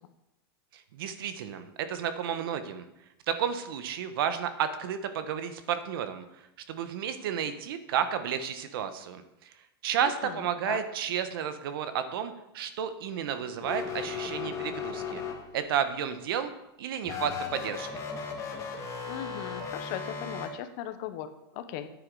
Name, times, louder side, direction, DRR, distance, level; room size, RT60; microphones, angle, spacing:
voice 1, 0.7-2.9 3.3-6.2 6.7-9.5 9.8-15.2 15.5-16.5 16.8-18.0, right 8 dB, 70° right, 10 dB, 1.3 m, -32 dB
voice 2, 10.0-10.8 19.1-21.9, left 11 dB, 50° left, 10 dB, 1.1 m, -38 dB
sound 1, 13.6-15.8 17.0-20.5, left 6 dB, 25° left, 2.3 m, -36 dB
10.0 x 8.6 x 4.9 m, 0.89 s
supercardioid pair, 135°, 13 cm